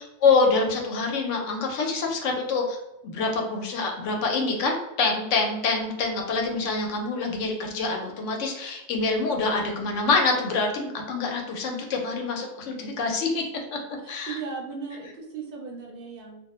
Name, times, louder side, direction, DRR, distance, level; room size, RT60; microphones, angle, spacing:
voice 1, 0.0-2.8 3.0-13.4 13.7-13.8 14.1-14.4, left 3 dB, 75° left, 2 dB, 0.9 m, -26 dB
voice 2, 14.0-16.4, right 5 dB, 60° right, 0 dB, 0.6 m, -37 dB
2.2 x 2.0 x 2.9 m, 0.94 s
omnidirectional pair, 1.3 m